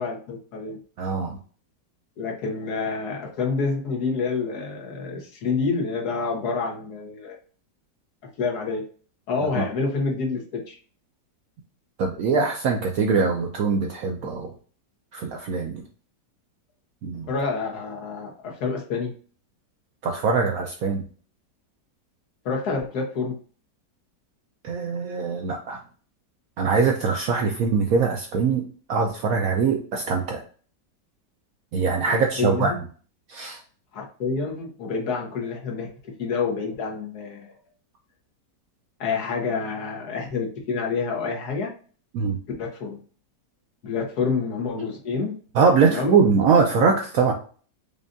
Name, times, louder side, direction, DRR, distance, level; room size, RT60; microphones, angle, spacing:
voice 1, 0.0-0.8 2.2-7.4 8.4-8.8 9.3-10.8 17.3-19.1 22.4-23.3 32.1-32.8 33.9-35.9 36.2-37.5 39.0-41.7 42.6-43.0 43.8-45.3 45.8-46.2, left 4 dB, 65° left, 0 dB, 1.4 m, -28 dB
voice 2, 1.0-1.4 9.6-9.7 12.0-14.5 15.1-15.8 17.0-17.3 20.0-21.0 24.6-25.8 26.6-30.4 31.7-32.7 33.3-33.6 42.1-42.4 45.5-47.3, right 5 dB, 70° right, 2 dB, 0.8 m, -22 dB
5.1 x 2.3 x 2.5 m, 0.41 s
omnidirectional pair, 1.9 m